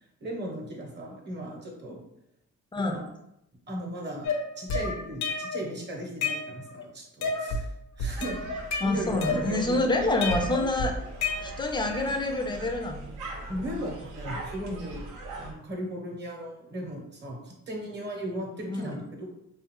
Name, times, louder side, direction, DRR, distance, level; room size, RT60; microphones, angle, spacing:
voice 1, 0.2-2.0 2.7-3.0 3.7-4.3 4.6-7.7 8.0-8.5 8.8-9.8 13.5-15.1 15.4-19.3, equal, 35° right, 0 dB, 0.8 m, -36 dB
sound 1, 4.2-5.7 6.0-6.8 7.2-7.7 8.0-9.8 10.2-11.8, left 3 dB, 65° left, 0.6 m, -30 dB
sound 2, 8.1-15.5, right 2 dB, 85° right, 0.7 m, -41 dB
voice 2, 8.8-10.9 11.4-13.0 18.7-18.9, left 2 dB, 15° left, 4 dB, 0.4 m, -27 dB
2.6 x 2.3 x 2.9 m, 0.80 s
cardioid pair, 90°, 30 cm